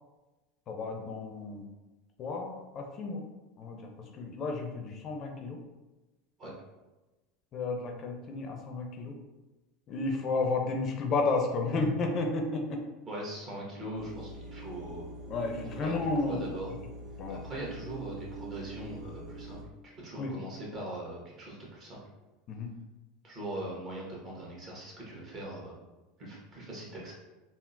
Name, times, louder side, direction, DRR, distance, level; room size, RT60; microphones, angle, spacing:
voice 1, 0.7-1.6 2.2-3.2 3.6-3.8 4.1-5.6 7.5-9.2 9.9-12.8 15.3-16.4 17.2-17.4 20.2-20.3 22.5-22.7, left 3 dB, 45° left, 3 dB, 0.4 m, -32 dB
voice 2, 13.0-15.1 15.8-16.7 17.3-19.6 20.0-22.0 23.2-25.7 26.2-27.1, right 1 dB, 40° right, -4 dB, 1.2 m, -41 dB
sound 1, 13.9-19.6, right 2 dB, 65° right, 1.1 m, -44 dB
3.7 x 2.0 x 2.5 m, 1.1 s
hypercardioid pair, 85°, 0 cm